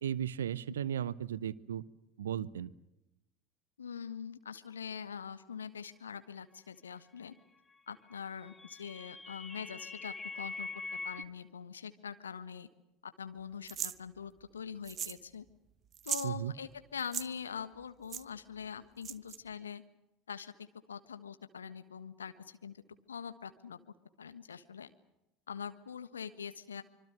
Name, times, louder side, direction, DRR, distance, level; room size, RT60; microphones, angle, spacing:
voice 1, 0.0-1.8 2.2-2.7 16.2-16.5, right 9 dB, 70° right, 21 dB, 0.8 m, -35 dB
voice 2, 3.8-7.3 7.9-12.7 13.0-15.4 16.0-19.8 20.3-22.8 23.1-23.8 24.2-24.9 25.5-26.8, left 7 dB, 80° left, 11 dB, 1.4 m, -44 dB
sound 1, 8.1-11.2, left 3 dB, 15° left, 1.3 m, -43 dB
sound 2, 13.7-14.0 14.9-15.2 15.5-15.6 15.9-16.3 17.0-17.3 18.1-18.2 19.0-19.4, right 9 dB, 35° right, 0.9 m, -38 dB
25.5 x 24.0 x 6.6 m, 0.90 s
figure-of-eight pair, 70°, 0 cm